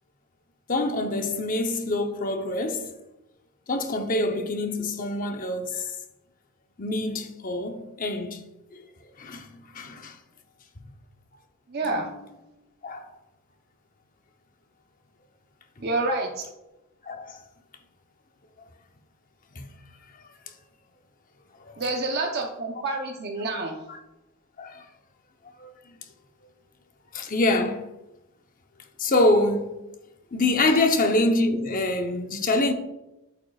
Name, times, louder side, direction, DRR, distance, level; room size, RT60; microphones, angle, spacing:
voice 1, 0.7-2.9 3.7-6.0 6.8-8.4 8.7-8.8 9.2-10.2 11.9-12.2 12.8-13.1 17.1-17.4 19.6-19.7 23.9-24.0 24.6-24.8 25.6-25.7 27.1-27.8 29.0-29.8 30.3-32.7, left 2 dB, 40° left, 0.8 m, -25 dB
voice 2, 11.7-12.1 15.8-16.4 21.8-23.8, right 2 dB, 45° right, 0.8 m, -28 dB
8.2 x 8.0 x 2.4 m
head